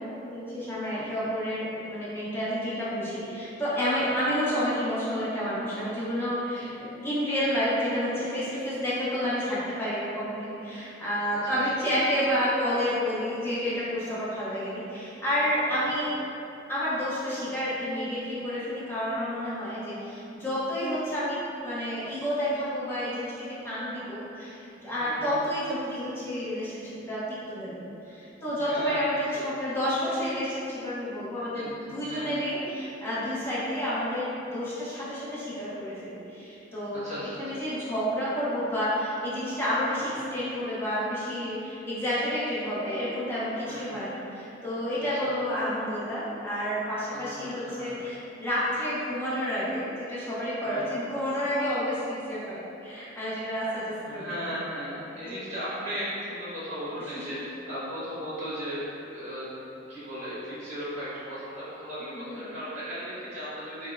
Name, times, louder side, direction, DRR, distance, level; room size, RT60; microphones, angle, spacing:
voice 1, 0.0-16.1 16.7-27.2 27.5-27.8 28.1-37.0 37.4-54.4 55.3-55.4 62.0-62.4, equal, 10° left, -10 dB, 0.7 m, -30 dB
voice 2, 25.0-25.3 28.0-28.1 28.6-30.1 31.5-32.3 36.9-37.6 39.9-40.2 43.7-43.9 45.0-45.3 47.1-48.0 50.6-50.9 54.0-58.8 59.1-59.6 59.9-63.9, equal, 35° right, -12 dB, 1.5 m, -37 dB
4.9 x 2.1 x 2.4 m, 2.9 s
head